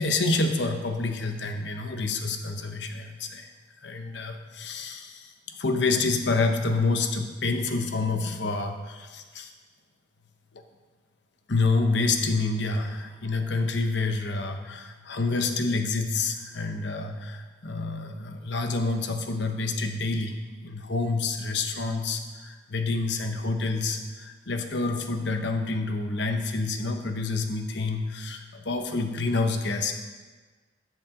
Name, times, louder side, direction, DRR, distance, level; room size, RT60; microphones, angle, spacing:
voice 1, 0.0-3.5 3.8-5.3 5.6-9.5 11.5-20.4 20.6-29.9, left 3 dB, 60° left, 5 dB, 0.9 m, -28 dB
13.5 x 7.6 x 3.8 m, 1.4 s
head